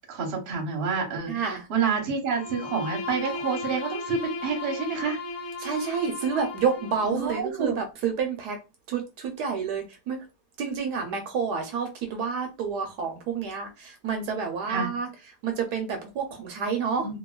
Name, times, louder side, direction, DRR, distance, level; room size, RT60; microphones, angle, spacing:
voice 1, 0.1-5.2 7.1-7.8 14.7-14.9 17.0-17.2, right 5 dB, 45° right, 0.9 m, -28 dB
voice 2, 1.3-1.6 5.6-8.6 8.9-10.2 10.6-15.1 15.4-17.2, right 6 dB, 75° right, 1.1 m, -29 dB
Bowed string instrument, 2.3-7.2, left 3 dB, 65° left, 1.2 m, -35 dB
2.8 x 2.5 x 2.2 m
omnidirectional pair, 1.8 m